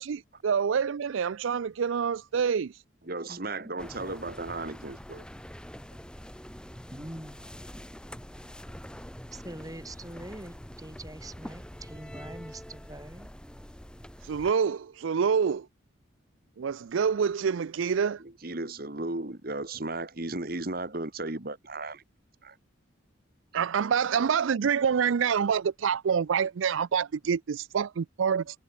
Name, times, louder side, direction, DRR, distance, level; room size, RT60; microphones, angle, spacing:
voice 1, 0.0-2.7 14.2-15.7 16.6-18.2 23.5-28.6, right 6 dB, 75° right, 0.4 m, -27 dB
voice 2, 3.0-5.3 18.2-22.0 22.4-22.6 23.5-23.6, right 2 dB, 50° right, 1.7 m, -35 dB
sound 1, 3.8-14.5, equal, 5° left, 1.4 m, -45 dB
voice 3, 6.9-7.6 9.3-13.3, right 1 dB, 15° right, 3.1 m, -44 dB
head